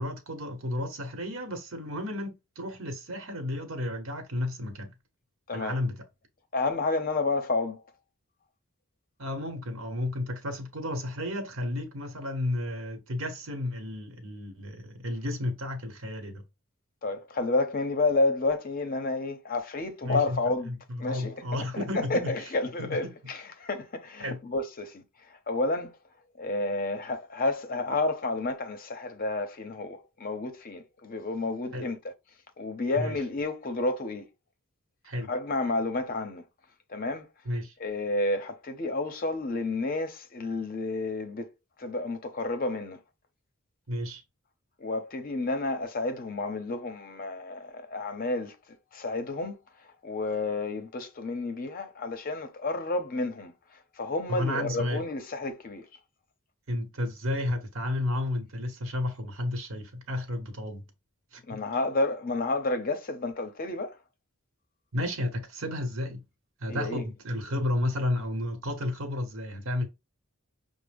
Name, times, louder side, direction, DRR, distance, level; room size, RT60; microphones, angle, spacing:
voice 1, 0.0-4.9 5.5-6.0 9.2-16.4 20.0-20.4 20.7-22.3 22.8-23.1 24.2-24.4 31.7-31.9 33.0-33.1 35.0-35.3 37.4-37.7 43.9-44.2 54.3-55.0 56.7-60.8 61.3-61.6 64.9-66.2 66.6-69.8, left 1 dB, 65° right, 1.0 m, -32 dB
voice 2, 5.5-5.8 6.5-7.8 17.0-20.7 21.0-26.0 26.4-32.1 32.6-34.3 35.3-36.4 36.9-37.3 37.8-41.5 41.8-43.0 44.8-48.5 48.9-49.6 50.0-53.5 54.0-55.8 61.5-64.0 66.7-67.1, left 2 dB, 40° left, 0.6 m, -30 dB
6.0 x 2.0 x 3.4 m
head